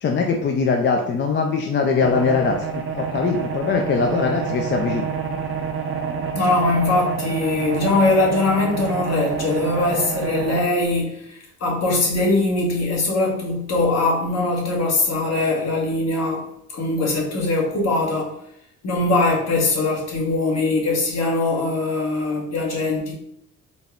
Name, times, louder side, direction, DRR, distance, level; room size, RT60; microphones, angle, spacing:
voice 1, 0.0-5.0, left 5 dB, 40° left, 2 dB, 0.4 m, -21 dB
sound 1, 2.0-10.6, right 6 dB, 45° right, 0.7 m, -28 dB
voice 2, 6.3-16.5 16.7-18.4 18.8-23.1, left 2 dB, 60° left, -2 dB, 1.3 m, -21 dB
4.0 x 2.2 x 3.6 m, 0.74 s
cardioid pair, 90°, 30 cm